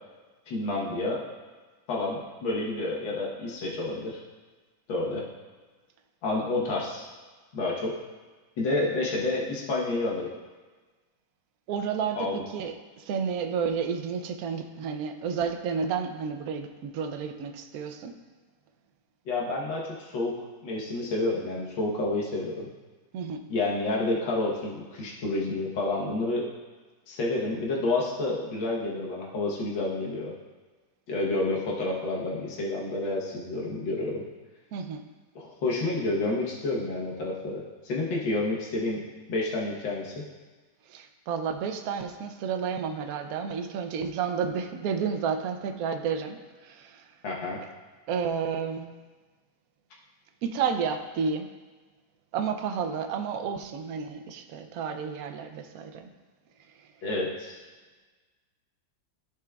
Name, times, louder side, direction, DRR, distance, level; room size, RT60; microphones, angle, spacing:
voice 1, 0.5-1.2 1.9-4.2 4.9-5.2 6.2-7.1 7.5-7.9 8.6-10.3 12.2-12.4 19.3-20.3 20.6-22.7 23.5-26.5 27.1-30.3 31.1-34.2 35.4-39.0 39.3-40.2 47.2-47.6 57.0-57.6, left 2 dB, 85° left, -3 dB, 1.9 m, -29 dB
voice 2, 11.7-12.3 12.5-18.2 23.1-23.4 34.7-35.0 40.9-46.4 46.6-47.0 48.1-48.9 50.4-51.5 52.3-56.1, right 6 dB, 70° right, 7 dB, 0.9 m, -31 dB
14.5 x 5.0 x 2.3 m, 1.3 s
omnidirectional pair, 2.0 m